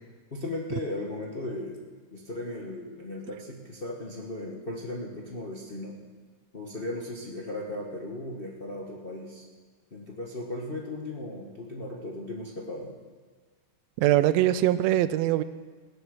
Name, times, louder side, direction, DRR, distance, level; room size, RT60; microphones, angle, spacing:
voice 1, 0.3-1.8 2.1-6.0 6.5-9.4 9.9-12.9, left 2 dB, 65° left, -2 dB, 0.5 m, -36 dB
voice 2, 14.0-15.4, right 13 dB, 80° right, 14 dB, 1.7 m, -22 dB
16.5 x 10.0 x 6.4 m, 1.5 s
omnidirectional pair, 3.3 m